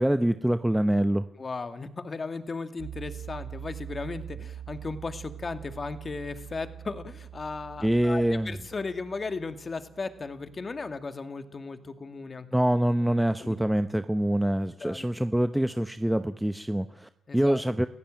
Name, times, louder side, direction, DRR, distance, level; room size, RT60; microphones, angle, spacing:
voice 1, 0.0-1.3 7.8-8.6 12.5-17.9, right 1 dB, 5° right, 10 dB, 0.9 m, -25 dB
voice 2, 1.4-12.5 13.4-13.6 14.8-15.1 17.3-17.6, left 4 dB, 30° left, 9 dB, 2.3 m, -36 dB
sound 1, 2.8-14.6, right 9 dB, 90° right, 2.3 m, -45 dB
30.0 x 15.5 x 9.0 m, 0.77 s
cardioid pair, 90°, 0 cm